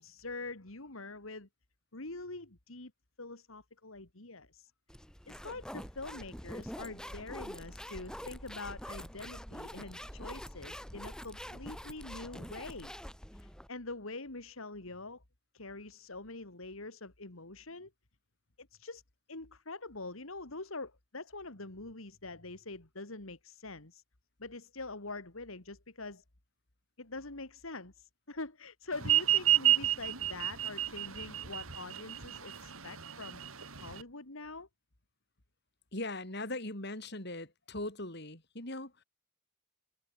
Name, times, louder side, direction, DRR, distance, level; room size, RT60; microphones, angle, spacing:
voice 1, 0.0-1.5 1.9-2.9 3.2-4.7 5.3-12.9 13.4-15.2 15.5-17.9 18.6-19.0 19.3-24.0 24.4-26.2 27.0-33.4 33.8-34.7, left 3 dB, 80° left, 2.8 m, -44 dB
sound 1, 4.9-13.7, equal, 5° left, 5.4 m, -45 dB
sound 2, 29.0-34.0, right 12 dB, 80° right, 3.0 m, -29 dB
voice 2, 35.9-38.9, left 2 dB, 50° left, 5.2 m, -40 dB
head